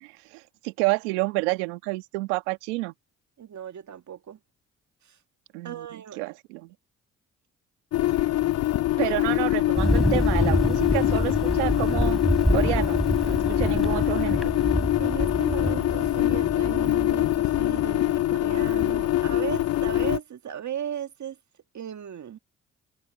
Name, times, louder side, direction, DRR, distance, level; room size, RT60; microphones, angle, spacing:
voice 1, 0.0-2.9 5.5-6.7 9.0-12.2 12.5-14.5, right 23 dB, 90° right, 1.5 m, -29 dB
voice 2, 3.4-4.4 5.6-6.3 9.0-9.1 15.0-21.4 21.7-22.4, right 9 dB, 55° right, 2.1 m, -36 dB
sound 1, 7.9-20.2, left 15 dB, 50° left, 0.4 m, -24 dB
Thunder, 9.8-18.0, equal, ahead, 4.1 m, -27 dB
hypercardioid pair, 45°, 34 cm